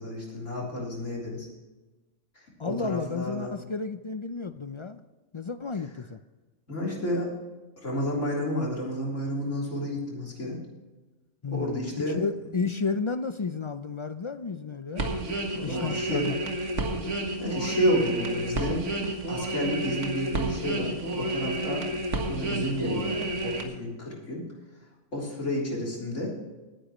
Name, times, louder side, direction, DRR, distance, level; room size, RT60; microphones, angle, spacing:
voice 1, 0.0-1.5 2.4-3.5 6.7-7.3 7.8-10.6 11.5-12.2 15.6-16.3 17.4-21.9 22.3-24.5 25.1-26.3, equal, 80° left, -3 dB, 3.8 m, -31 dB
voice 2, 2.6-5.0 5.3-6.2 11.4-15.1 15.6-16.5, left 4 dB, 55° left, 10 dB, 0.3 m, -32 dB
sound 1, 15.0-23.6, right 1 dB, 75° right, 1.9 m, -30 dB
19.0 x 10.0 x 3.1 m, 1.2 s
omnidirectional pair, 1.3 m